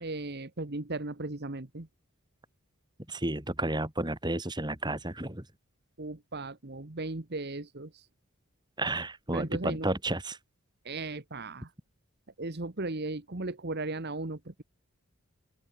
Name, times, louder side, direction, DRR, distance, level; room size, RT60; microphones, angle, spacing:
voice 1, 0.0-1.9 6.0-8.1 9.3-9.9 10.8-11.7 12.4-14.6, right 2 dB, 45° right, 1.4 m, -36 dB
voice 2, 3.1-5.5 8.8-10.4, right 2 dB, 20° right, 3.1 m, -32 dB
open air
head